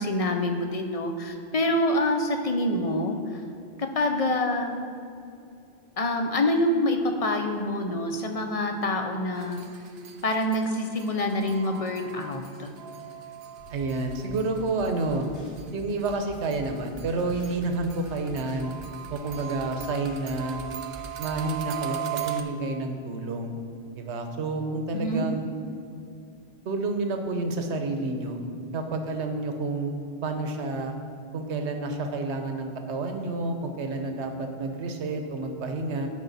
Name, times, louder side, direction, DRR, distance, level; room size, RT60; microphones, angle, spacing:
voice 1, 0.0-3.4 3.8-4.8 6.0-9.6 10.2-12.7 24.9-25.3, left 1 dB, 40° left, 5 dB, 0.6 m, -26 dB
sound 1, 9.4-15.6 16.0-22.4, right 11 dB, 70° right, 0.8 m, -39 dB
sound 2, 13.6-21.6, equal, 85° left, 1.7 m, -47 dB
voice 2, 13.7-15.3 15.7-18.7 19.1-20.6 21.2-23.5 23.9-25.5 26.6-28.4 28.7-29.9 30.2-30.9 31.3-36.1, right 3 dB, 85° right, 5 dB, 1.1 m, -29 dB
12.0 x 5.4 x 4.1 m, 2.5 s
omnidirectional pair, 1.1 m